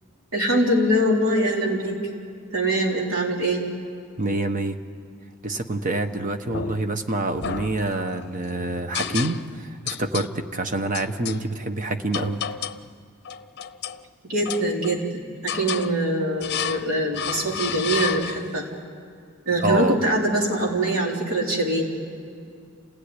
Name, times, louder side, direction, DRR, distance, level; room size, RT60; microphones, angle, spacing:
voice 1, 0.3-2.0 2.5-3.7 14.3-18.7 19.5-21.9, right 1 dB, 70° right, -1 dB, 4.1 m, -23 dB
voice 2, 4.2-4.8 5.4-12.4 19.6-20.0, right 2 dB, 40° right, 7 dB, 1.2 m, -26 dB
sound 1, 6.5-7.0 7.4-8.3 8.9-9.6 9.9-10.3 10.9-11.4 12.1-12.9 13.2-14.0 14.4-15.1 15.5-15.9 16.4-16.9 17.1-18.6, left 8 dB, 50° left, 0.7 m, -31 dB
28.0 x 17.0 x 9.9 m, 2.2 s
head